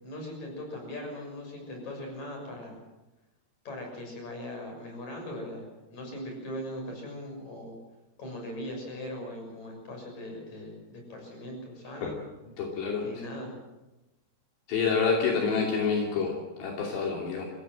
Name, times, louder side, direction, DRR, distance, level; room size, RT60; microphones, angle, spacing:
voice 1, 0.0-2.8 3.7-5.6 5.9-7.7 8.2-12.2 13.0-13.5, left 1 dB, 40° left, 2 dB, 7.7 m, -39 dB
voice 2, 12.6-13.0 14.7-17.5, left 5 dB, 75° left, 0 dB, 4.9 m, -27 dB
25.0 x 17.0 x 7.7 m, 1.0 s
omnidirectional pair, 4.9 m